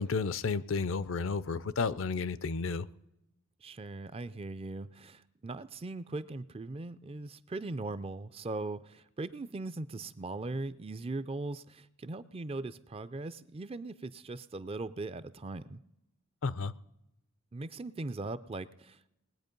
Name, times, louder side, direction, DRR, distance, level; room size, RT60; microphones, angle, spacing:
voice 1, 0.0-2.9 16.4-16.7, left 4 dB, 60° left, 17 dB, 0.5 m, -32 dB
voice 2, 3.6-15.8 17.5-19.0, right 2 dB, 25° right, 14 dB, 0.4 m, -39 dB
20.5 x 8.6 x 5.3 m, 0.88 s
head